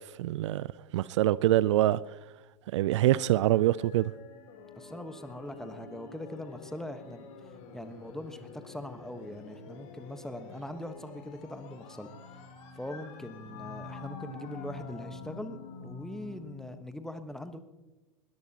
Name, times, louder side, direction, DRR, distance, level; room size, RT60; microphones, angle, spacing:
voice 1, 0.2-0.7 0.9-2.0 2.7-4.1, right 14 dB, 60° right, 0.5 m, -24 dB
sound 1, 3.1-16.8, left 4 dB, 45° left, 3.6 m, -47 dB
voice 2, 4.8-7.3 7.7-12.1 12.7-17.6, left 1 dB, 5° left, 1.3 m, -41 dB
20.5 x 20.0 x 3.0 m
figure-of-eight pair, 95°, 17 cm